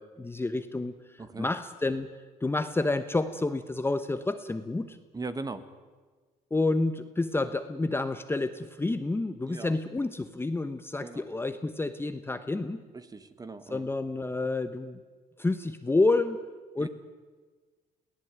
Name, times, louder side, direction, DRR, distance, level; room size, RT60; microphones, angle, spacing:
voice 1, 0.0-2.1 2.4-5.0 6.5-12.8 13.7-15.0 15.4-16.4 16.7-16.9, left 2 dB, 15° left, 10 dB, 1.0 m, -29 dB
voice 2, 5.1-5.6 9.5-9.7 11.0-11.2 13.1-13.8 16.8-16.9, right 3 dB, 20° right, 11 dB, 1.6 m, -38 dB
22.5 x 17.0 x 9.3 m, 1.4 s
cardioid pair, 110°, 17 cm